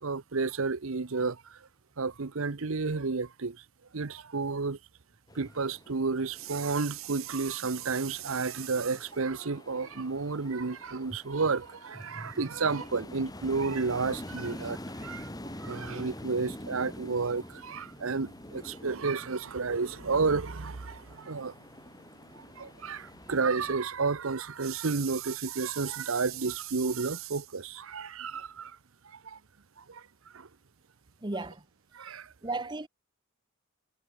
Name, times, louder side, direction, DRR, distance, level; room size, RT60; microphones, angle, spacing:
voice 1, 0.0-1.6 2.0-3.6 3.9-4.8 5.3-15.3 15.5-21.5 22.3-28.8 29.0-29.4 29.8-30.1 30.3-30.5 31.9-32.3, right 4 dB, 70° right, 0.8 m, -31 dB
sound 1, 5.3-23.7, left 1 dB, 15° left, 1.7 m, -46 dB
voice 2, 31.2-31.6 32.4-32.9, right 2 dB, 20° right, 1.0 m, -36 dB
head